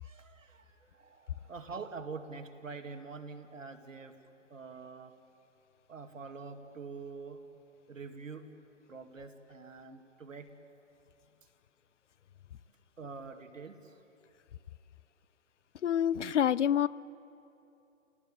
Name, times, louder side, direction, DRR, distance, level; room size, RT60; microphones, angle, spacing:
voice 1, 0.0-4.2 4.5-5.1 5.9-7.4 7.9-8.5 8.9-10.5 13.0-13.9, right 4 dB, 80° right, 5 dB, 2.4 m, -45 dB
voice 2, 15.8-16.9, left 9 dB, 65° left, 20 dB, 0.7 m, -27 dB
28.5 x 18.5 x 8.9 m, 2.9 s
figure-of-eight pair, 130°, 38 cm